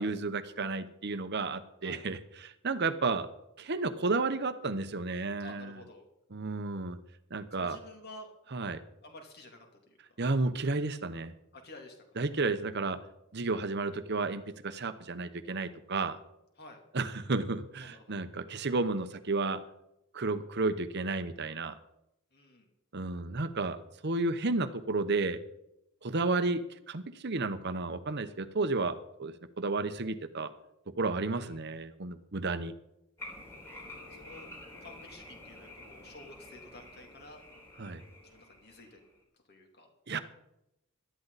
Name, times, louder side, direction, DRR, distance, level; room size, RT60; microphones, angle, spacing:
voice 1, 0.0-3.3 3.6-5.7 6.3-7.0 7.3-7.8 8.5-8.8 10.2-11.3 12.2-13.0 13.3-16.2 16.9-19.6 20.1-21.8 22.9-23.8 24.0-25.4 26.0-26.6 26.9-30.5 31.0-32.7 37.8-38.0 40.1-40.2, right 3 dB, 50° right, 11 dB, 0.9 m, -32 dB
voice 2, 5.4-6.0 7.5-8.3 9.0-10.0 11.5-12.0 16.6-16.8 17.8-18.2 22.3-22.7 31.3-31.6 34.1-34.5 34.8-37.4 38.2-39.0 39.5-39.9, left 2 dB, 50° left, 3 dB, 3.0 m, -51 dB
sound 1, 33.2-39.2, left 2 dB, 15° left, 4.2 m, -49 dB
18.0 x 12.5 x 4.1 m, 0.85 s
head